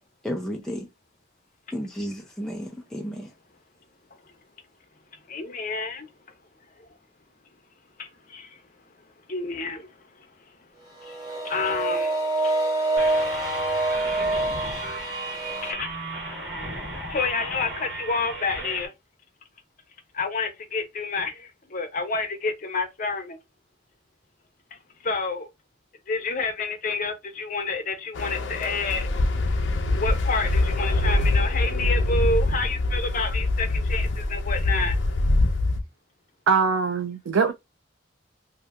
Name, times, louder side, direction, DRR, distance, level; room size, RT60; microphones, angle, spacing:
voice 1, 0.2-0.9 1.7-3.3, equal, 5° left, 0.4 m, -32 dB
voice 2, 5.3-6.1 8.0-8.6 9.3-10.5 11.0-12.2 15.6-16.5 17.1-18.9 20.1-23.4 24.7-25.5 26.1-29.1 29.9-35.0, left 4 dB, 40° left, 0.7 m, -29 dB
sound 1, 11.0-15.7, right 2 dB, 25° right, 1.1 m, -26 dB
sound 2, 13.0-18.9, right 1 dB, 65° right, 1.6 m, -35 dB
sound 3, 28.2-35.8, left 2 dB, 75° left, 0.6 m, -24 dB
voice 3, 36.5-37.5, right 5 dB, 85° right, 0.4 m, -22 dB
2.7 x 2.5 x 3.3 m
head